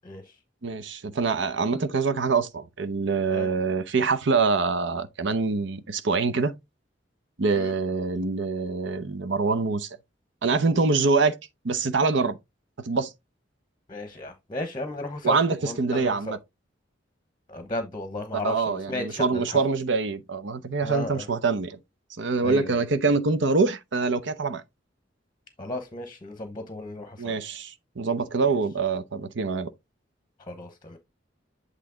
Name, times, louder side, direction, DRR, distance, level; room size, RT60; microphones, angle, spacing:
voice 1, 0.6-6.5 7.4-9.9 10.4-11.3 11.6-12.4 12.8-13.1 15.2-16.4 18.4-21.8 22.2-24.6 27.2-29.7, right 4 dB, 70° right, 0.8 m, -25 dB
voice 2, 13.9-16.4 17.5-19.6 20.8-21.3 22.4-22.8 25.6-27.3 30.5-31.0, left 1 dB, 25° left, 0.9 m, -34 dB
8.3 x 3.2 x 3.8 m
head